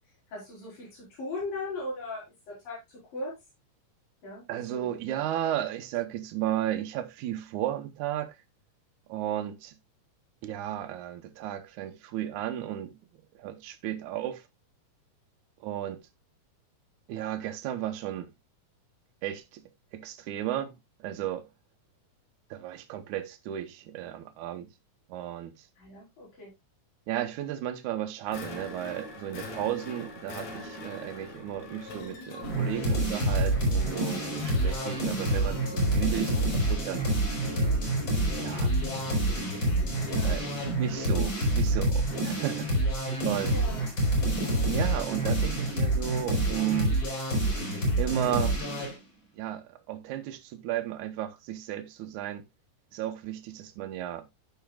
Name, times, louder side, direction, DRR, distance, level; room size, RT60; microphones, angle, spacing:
voice 1, 0.3-3.3 4.2-5.0 25.8-26.5 34.8-35.1 40.0-40.7 43.5-43.8, left 2 dB, 75° left, 6.2 m, -39 dB
voice 2, 4.5-8.4 9.1-9.7 10.4-12.9 13.4-14.4 15.6-16.0 17.1-18.3 19.2-19.6 19.9-20.7 21.0-21.5 22.5-24.7 25.1-25.5 27.1-37.0 38.4-38.7 40.2-42.7 43.2-43.6 44.7-47.0 48.0-48.6 49.3-52.4 52.9-54.3, right 12 dB, 75° right, 2.2 m, -34 dB
sound 1, 28.3-40.8, left 3 dB, 60° left, 2.7 m, -42 dB
sound 2, 32.4-49.0, right 1 dB, 35° left, 5.3 m, -27 dB
13.5 x 5.7 x 2.4 m
omnidirectional pair, 4.0 m